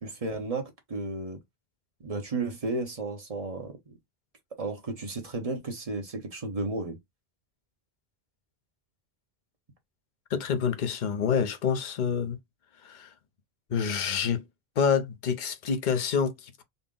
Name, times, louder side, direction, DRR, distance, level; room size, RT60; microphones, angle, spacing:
voice 1, 0.0-1.4 2.0-3.9 4.6-7.0, right 3 dB, 35° right, 1.1 m, -33 dB
voice 2, 10.3-12.4 12.8-13.1 13.7-14.4 14.8-16.6, left 6 dB, 55° left, 0.8 m, -27 dB
4.1 x 2.1 x 3.7 m
omnidirectional pair, 1.0 m